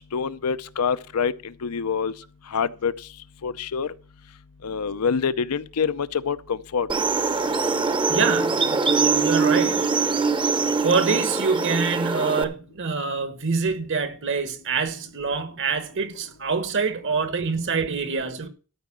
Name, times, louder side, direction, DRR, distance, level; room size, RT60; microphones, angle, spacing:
voice 1, 0.1-2.1 2.5-2.9 3.4-3.9 4.6-6.9, left 6 dB, 85° left, 0.6 m, -26 dB
sound 1, 6.9-12.4, right 4 dB, 20° right, 0.7 m, -23 dB
voice 2, 8.1-10.1 10.8-18.5, right 5 dB, 55° right, 1.3 m, -26 dB
13.0 x 5.0 x 7.3 m
head